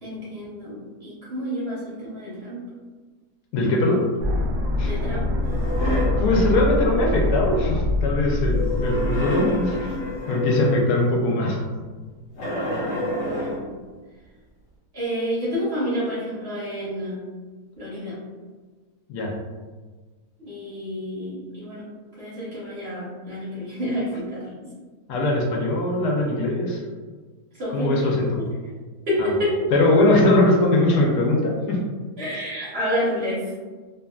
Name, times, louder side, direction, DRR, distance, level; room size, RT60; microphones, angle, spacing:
voice 1, 0.0-2.7 4.8-5.3 13.2-13.6 14.9-17.2 17.8-18.2 20.4-21.9 22.2-24.7 27.6-28.1 29.1-29.7 32.2-33.5, equal, 40° right, -9 dB, 1.1 m, -29 dB
voice 2, 3.5-4.0 4.8-4.9 6.2-9.8 10.3-11.6 19.1-19.3 25.1-26.8 27.7-28.4 29.2-29.3 29.7-31.8, left 2 dB, 80° left, -1 dB, 1.2 m, -21 dB
sound 1, 4.2-10.2, left 2 dB, 70° right, 0.8 m, -24 dB
sound 2, 5.4-6.3 8.4-11.0 12.4-13.7, left 1 dB, 55° left, 1.0 m, -28 dB
2.9 x 2.4 x 2.3 m, 1.4 s
omnidirectional pair, 1.7 m